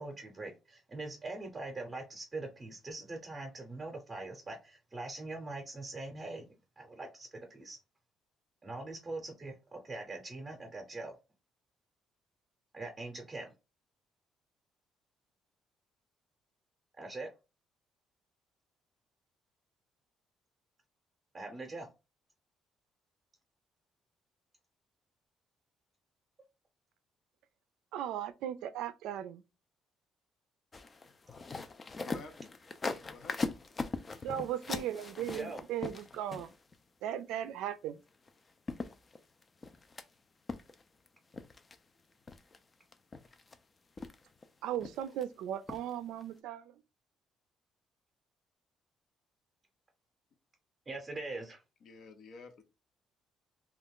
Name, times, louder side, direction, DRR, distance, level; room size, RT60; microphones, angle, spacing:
voice 1, 0.0-6.5 6.8-7.8 8.6-11.1 12.7-13.5 17.0-17.3 21.3-21.9 35.3-35.6 50.9-51.6, right 2 dB, 25° right, 0.7 m, -42 dB
voice 2, 27.9-29.4 34.2-36.5 37.0-38.0 44.6-46.8, right 11 dB, 90° right, 0.3 m, -37 dB
sound 1, 30.7-36.8 38.3-38.4 38.7-40.0 40.5-41.1 41.3-41.8 42.3-42.6 42.9-43.6 44.0-44.5 44.8-45.2 45.7-45.9 46.2-46.3, left 3 dB, 30° left, 0.3 m, -40 dB
voice 3, 32.1-32.5 32.8-33.5 51.8-52.6, left 4 dB, 70° left, 0.6 m, -50 dB
2.5 x 2.3 x 3.5 m
cardioid pair, 100°, 0 cm